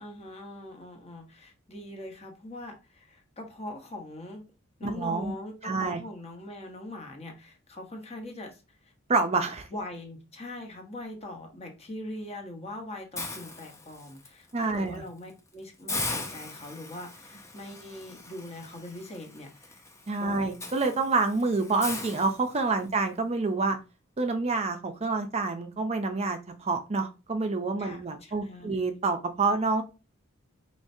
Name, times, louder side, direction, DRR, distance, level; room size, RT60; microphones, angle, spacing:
voice 1, 0.0-4.4 4.8-8.9 9.7-19.8 20.2-20.4 22.8-22.9 27.8-28.7, left 1 dB, 30° left, 3 dB, 1.0 m, -42 dB
voice 2, 4.8-5.3 5.6-6.0 9.1-9.7 14.5-15.0 20.1-23.8 24.2-29.8, right 3 dB, 30° right, 6 dB, 0.5 m, -27 dB
Hiss, 13.2-14.3 14.7-15.0 15.3-15.4 15.9-22.9, left 2 dB, 15° left, 0.6 m, -39 dB
4.8 x 3.2 x 2.7 m, 0.30 s
head